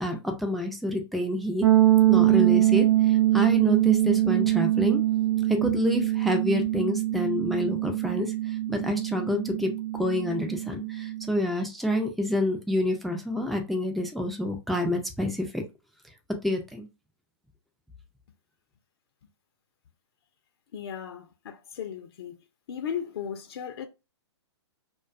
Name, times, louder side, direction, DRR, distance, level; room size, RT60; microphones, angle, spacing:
voice 1, 0.0-1.7 2.1-5.0 5.5-15.6 16.4-16.9, left 1 dB, ahead, 0.3 m, -28 dB
sound 1, 1.6-11.3, right 14 dB, 70° right, 0.7 m, -23 dB
voice 2, 20.7-22.3 22.7-23.9, left 8 dB, 60° left, 0.5 m, -36 dB
2.5 x 2.2 x 2.4 m
hypercardioid pair, 125°, 15 cm